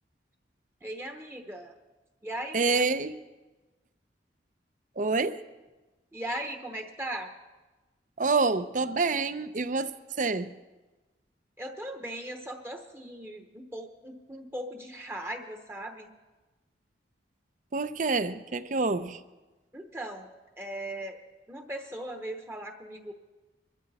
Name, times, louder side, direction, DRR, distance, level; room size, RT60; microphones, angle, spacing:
voice 1, 0.8-1.7 2.2-2.7 6.1-7.3 11.6-16.1 19.7-20.3 20.6-21.2 21.5-23.1, right 1 dB, 15° right, 5 dB, 0.9 m, -38 dB
voice 2, 2.5-3.2 5.0-5.4 8.2-9.9 10.2-10.5 17.7-19.2, right 3 dB, 45° right, 13 dB, 0.6 m, -27 dB
23.5 x 13.0 x 4.1 m, 1.2 s
head